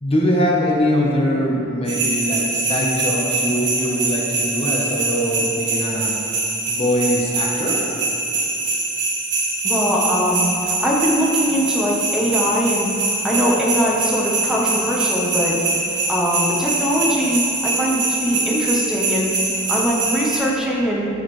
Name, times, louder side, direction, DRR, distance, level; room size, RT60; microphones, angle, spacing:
voice 1, 0.0-6.1 6.7-7.8, equal, 30° left, -2 dB, 0.9 m, -22 dB
sound 1, 1.9-20.4, right 3 dB, 60° right, 1.7 m, -23 dB
voice 2, 9.6-12.9 13.2-15.6 16.1-19.3 19.7-21.1, equal, 5° right, -4 dB, 0.9 m, -21 dB
12.5 x 4.8 x 3.1 m, 2.8 s
head